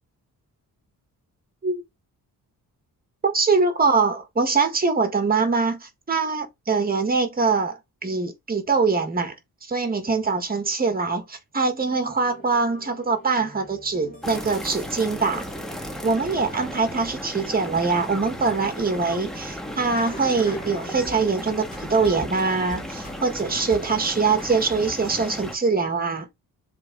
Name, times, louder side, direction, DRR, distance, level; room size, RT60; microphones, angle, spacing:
voice 1, 3.2-9.3 9.6-15.5 16.0-26.3, right 4 dB, 25° right, 1.9 m, -23 dB
sound 1, 11.7-21.4 21.7-23.4 23.7-24.1 24.4-25.1, left 1 dB, 25° left, 3.2 m, -43 dB
sound 2, 14.2-25.6, equal, ahead, 1.5 m, -35 dB
7.4 x 4.0 x 4.0 m
wide cardioid pair, 140°, 36 cm